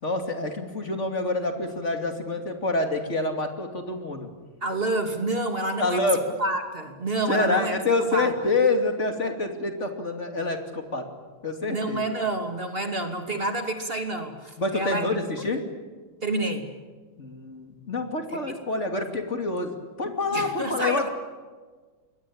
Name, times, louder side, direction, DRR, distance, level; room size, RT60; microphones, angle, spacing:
voice 1, 0.0-4.3 5.8-6.2 7.3-11.1 11.4-12.0 14.6-15.6 17.2-21.1, left 2 dB, 30° left, 5 dB, 3.0 m, -27 dB
voice 2, 4.6-6.0 6.4-7.7 8.1-8.3 11.7-15.1 16.2-16.7 18.5-18.6 20.3-21.1, right 2 dB, 25° right, 5 dB, 2.7 m, -28 dB
27.0 x 22.0 x 8.8 m, 1.4 s
omnidirectional pair, 2.4 m